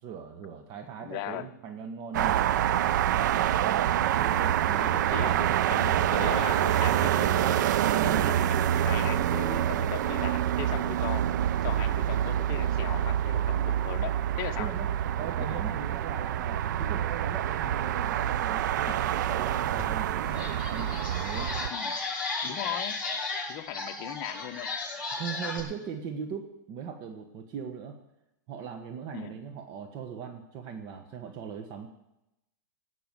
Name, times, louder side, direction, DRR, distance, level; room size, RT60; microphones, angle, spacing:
voice 1, 0.0-2.7 3.1-5.4 14.6-14.9 15.2-21.6 25.2-28.0 28.5-31.9, right 7 dB, 40° right, 4 dB, 1.3 m, -39 dB
voice 2, 1.0-1.5 4.7-11.3 11.6-14.7 15.5-15.6 21.7-22.0 22.4-23.0 23.5-24.7 29.1-29.4, left 13 dB, 40° left, 9 dB, 0.9 m, -38 dB
sound 1, 2.1-21.7, right 11 dB, 70° right, 0.5 m, -26 dB
sound 2, 19.8-19.9 20.3-25.6, left 3 dB, 5° right, 7.0 m, -35 dB
18.0 x 6.1 x 9.7 m, 0.90 s
hypercardioid pair, 135°, 10 cm